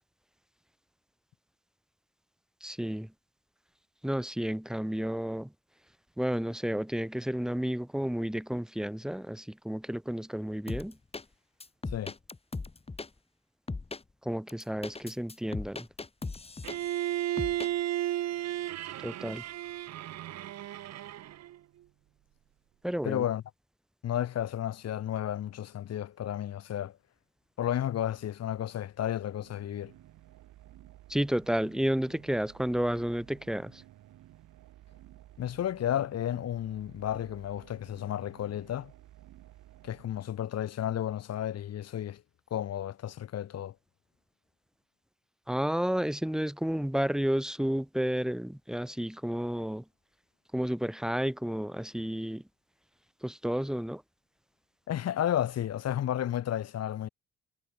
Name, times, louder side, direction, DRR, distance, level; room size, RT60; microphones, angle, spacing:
voice 1, 2.6-3.1 4.0-5.5 6.2-11.0 14.2-15.9 19.0-19.4 22.8-23.3 31.1-33.8 45.5-49.8 50.5-52.4 53.2-54.0, equal, ahead, 1.5 m, -31 dB
sound 1, 10.7-11.2 11.6-13.1 13.7-14.0 14.5-17.1 17.4-17.7, left 3 dB, 20° left, 1.7 m, -38 dB
Bowed string instrument, 16.6-21.6, right 13 dB, 60° right, 0.7 m, -34 dB
voice 2, 23.0-23.4 24.0-27.0 27.6-29.9 35.4-38.9 39.8-42.2 42.5-43.7 54.9-57.1, left 11 dB, 55° left, 1.0 m, -32 dB
sound 2, 29.0-40.8, right 14 dB, 85° right, 4.0 m, -55 dB
cardioid pair, 90°, 30 cm